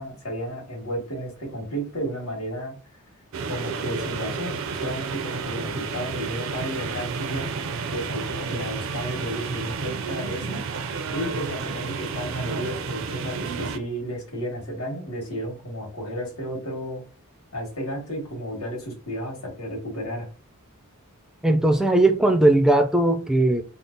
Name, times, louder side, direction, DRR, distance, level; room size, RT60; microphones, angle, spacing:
voice 1, 0.0-2.8 3.5-7.5 7.9-10.6 11.1-17.0 17.5-20.3, equal, 75° left, 1.9 m, -32 dB
sound 1, 3.3-13.8, right 5 dB, 65° right, 0.4 m, -31 dB
voice 2, 21.4-23.6, right 2 dB, ahead, 0.4 m, -18 dB
3.6 x 2.0 x 3.9 m
head